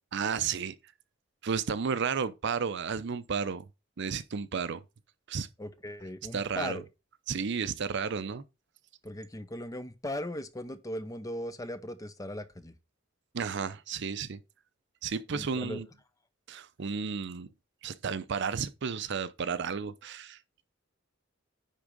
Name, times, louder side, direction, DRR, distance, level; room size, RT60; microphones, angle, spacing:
voice 1, 0.1-0.7 1.4-3.6 4.0-4.8 5.3-5.5 6.3-6.8 7.3-8.4 13.3-14.4 15.0-15.9 16.5-17.5 17.8-20.4, right 6 dB, 60° right, 0.6 m, -32 dB
voice 2, 5.6-6.8 9.0-12.7 15.3-15.8, left 1 dB, 15° left, 0.8 m, -38 dB
9.9 x 3.6 x 5.2 m
head